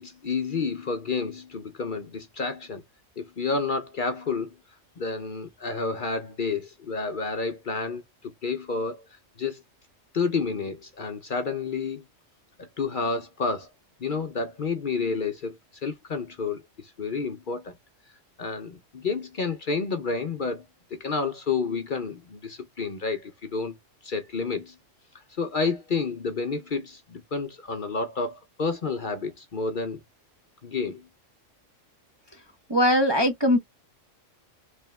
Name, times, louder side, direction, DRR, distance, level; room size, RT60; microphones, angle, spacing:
voice 1, 0.0-2.8 3.2-4.5 5.0-9.0 9.4-9.6 10.1-12.0 12.6-13.7 14.0-17.7 18.4-20.6 20.9-23.8 24.0-24.8 25.4-30.0 30.6-31.1, left 4 dB, 45° left, 0.8 m, -30 dB
voice 2, 32.7-33.6, equal, 25° right, 0.6 m, -20 dB
3.5 x 3.2 x 3.2 m
omnidirectional pair, 1.3 m